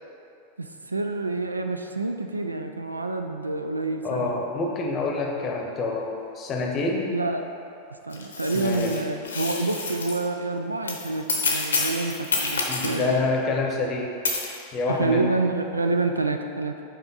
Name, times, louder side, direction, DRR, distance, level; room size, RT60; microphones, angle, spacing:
voice 1, 0.6-4.4 7.1-7.4 8.0-13.2 14.9-16.8, right 3 dB, 80° right, 6 dB, 0.3 m, -28 dB
voice 2, 4.0-7.1 8.5-9.0 12.7-14.2 14.7-15.3, left 3 dB, 30° left, 0 dB, 0.8 m, -27 dB
sound 1, 8.1-10.2 10.9-13.1 14.2-14.6, left 3 dB, 70° left, 0.7 m, -28 dB
5.7 x 4.3 x 3.9 m, 2.5 s
figure-of-eight pair, 90°, 0 cm